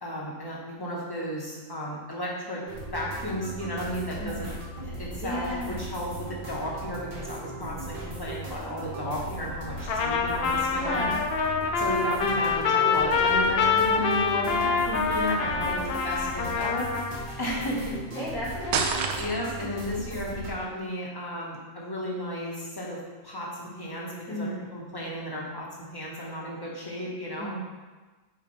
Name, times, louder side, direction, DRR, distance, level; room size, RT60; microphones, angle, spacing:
voice 1, 0.0-2.6 2.9-4.5 4.8-11.0 11.8-16.9 17.4-18.0 19.2-25.7 25.9-27.5, left 1 dB, 15° left, -5 dB, 1.2 m, -33 dB
sound 1, 2.7-20.5, right 1 dB, 40° right, 1.4 m, -38 dB
voice 2, 4.2-4.6 4.9-5.8 10.7-11.2 15.7-15.8 18.1-18.9 24.3-24.7 27.4-27.7, equal, 75° left, -6 dB, 2.3 m, -34 dB
Trumpet, 9.9-17.2, left 5 dB, 60° left, 0.6 m, -26 dB
sound 2, 18.7-19.7, right 5 dB, 85° right, 1.1 m, -27 dB
8.4 x 4.8 x 3.2 m, 1.3 s
omnidirectional pair, 1.5 m